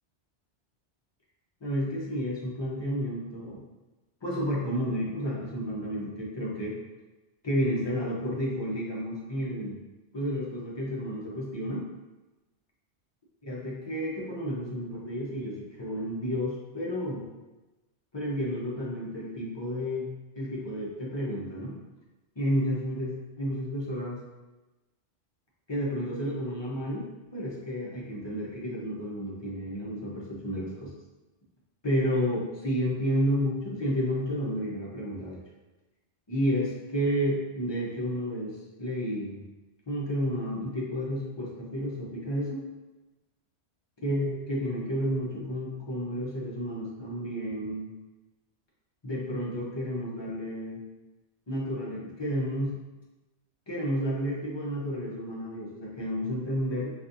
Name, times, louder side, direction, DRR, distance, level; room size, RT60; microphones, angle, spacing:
voice 1, 1.6-3.6 4.2-6.8 7.4-9.8 10.1-11.9 13.4-17.3 18.1-20.1 20.4-21.7 22.4-24.2 25.7-27.1 27.3-30.9 31.8-35.4 36.3-39.4 39.9-42.6 44.0-47.9 49.0-50.8 51.5-52.8 53.7-56.9, equal, 30° left, -5 dB, 0.6 m, -31 dB
4.0 x 2.5 x 2.6 m, 1.1 s
omnidirectional pair, 1.1 m